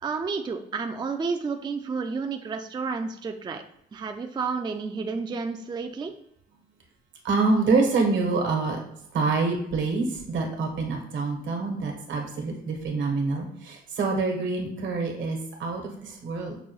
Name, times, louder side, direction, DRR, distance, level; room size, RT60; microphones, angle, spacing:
voice 1, 0.0-3.6 3.9-6.1, right 4 dB, 20° right, 5 dB, 0.4 m, -31 dB
voice 2, 7.2-8.8 9.1-16.6, right 3 dB, 75° right, 2 dB, 1.2 m, -26 dB
6.0 x 2.2 x 3.1 m, 0.73 s
cardioid pair, 90°, 20 cm